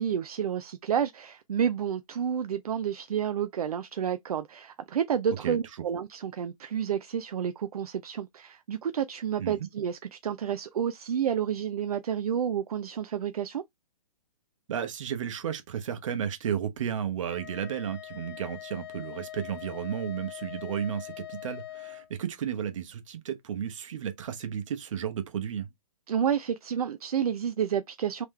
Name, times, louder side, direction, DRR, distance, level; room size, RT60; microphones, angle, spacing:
voice 1, 0.0-13.6 26.1-28.3, right 8 dB, 75° right, 0.4 m, -30 dB
voice 2, 14.7-25.7, right 8 dB, 55° right, 1.0 m, -33 dB
Wind instrument woodwind instrument, 17.3-22.1, left 14 dB, 45° left, 1.6 m, -43 dB
3.7 x 3.1 x 3.0 m
figure-of-eight pair, 130°, 19 cm